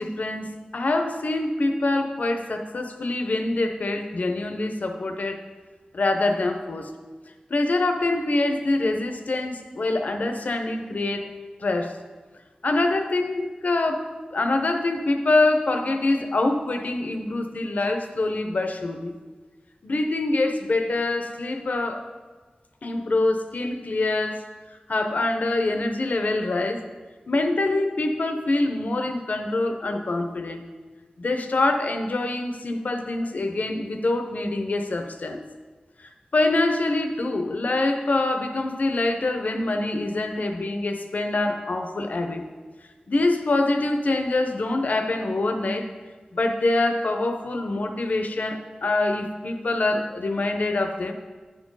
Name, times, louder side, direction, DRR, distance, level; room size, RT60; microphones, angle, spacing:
voice 1, 0.0-5.4 5.9-6.9 7.5-11.3 11.6-12.0 12.6-19.1 19.8-22.1 22.8-24.5 24.9-26.8 27.3-30.6 31.2-35.4 36.0-42.4 43.1-45.9 46.3-51.1, left 2 dB, 70° left, 5 dB, 0.7 m, -25 dB
10.0 x 4.5 x 4.7 m, 1.4 s
wide cardioid pair, 75°, 3 cm